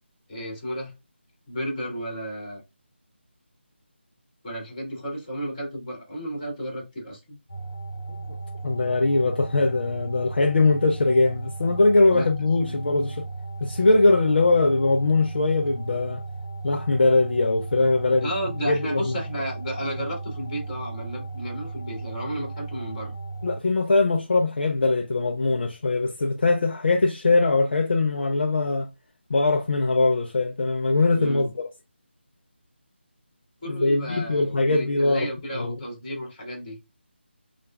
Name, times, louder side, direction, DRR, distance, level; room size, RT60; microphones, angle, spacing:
voice 1, 0.3-0.9 1.5-2.6 4.4-7.4 12.1-12.3 18.2-23.1 31.1-31.5 33.6-36.8, equal, 25° left, 2.3 m, -33 dB
sound 1, 7.5-23.6, right 3 dB, 85° left, 0.9 m, -36 dB
voice 2, 8.6-13.2 13.6-16.2 16.6-18.3 18.6-19.2 23.4-28.9 29.3-31.5 33.7-35.3 35.5-35.8, left 3 dB, 55° left, 0.6 m, -21 dB
6.5 x 2.4 x 2.3 m
figure-of-eight pair, 160°, 6 cm